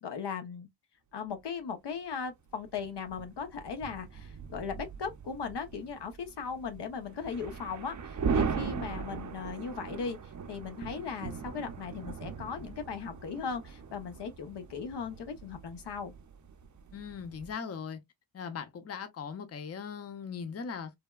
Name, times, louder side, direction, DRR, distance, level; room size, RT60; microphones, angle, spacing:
voice 1, 0.0-0.7 1.1-10.2 10.5-16.1, left 6 dB, 65° left, 0.7 m, -38 dB
sound 1, 1.3-1.4 2.6-17.5, right 6 dB, 40° right, 0.6 m, -39 dB
voice 2, 16.9-18.0 18.3-20.9, left 6 dB, 35° left, 0.6 m, -39 dB
3.3 x 2.2 x 2.2 m
cardioid pair, 80°, 45 cm